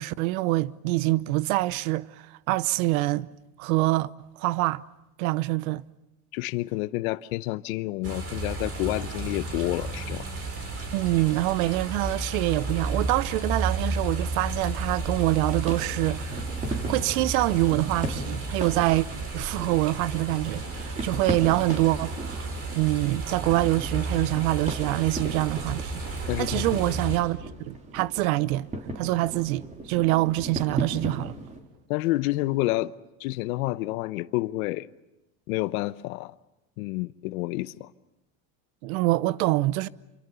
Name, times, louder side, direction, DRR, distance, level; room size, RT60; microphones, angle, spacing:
voice 1, 0.0-3.3 3.6-4.8 5.2-5.8 10.9-16.4 16.7-19.1 19.3-26.0 26.4-27.4 27.7-28.7 28.9-31.3 38.8-39.9, right 19 dB, 80° right, 0.9 m, -25 dB
voice 2, 6.3-10.3 26.3-26.9 31.9-32.9 33.2-34.9 35.5-36.3 36.8-37.9, left 19 dB, 80° left, 1.0 m, -29 dB
sound 1, 8.0-27.2, right 3 dB, 35° right, 5.8 m, -33 dB
sound 2, 14.5-31.6, right 1 dB, 15° right, 3.9 m, -38 dB
27.0 x 24.0 x 7.0 m
supercardioid pair, 135°, 42 cm